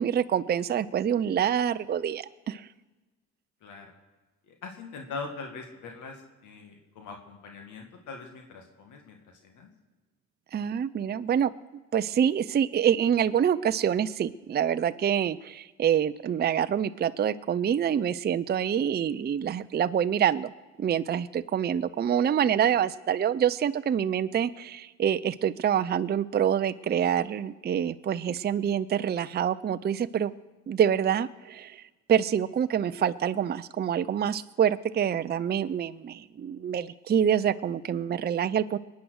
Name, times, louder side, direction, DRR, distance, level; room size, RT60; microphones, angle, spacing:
voice 1, 0.0-2.7 10.5-11.5 11.9-20.5 20.8-30.3 30.7-38.8, right 9 dB, 35° right, 12 dB, 0.5 m, -26 dB
voice 2, 3.6-3.9 4.5-9.7, left 4 dB, 85° left, 3 dB, 2.0 m, -42 dB
21.5 x 9.4 x 6.4 m, 1.2 s
cardioid pair, 90°, 30 cm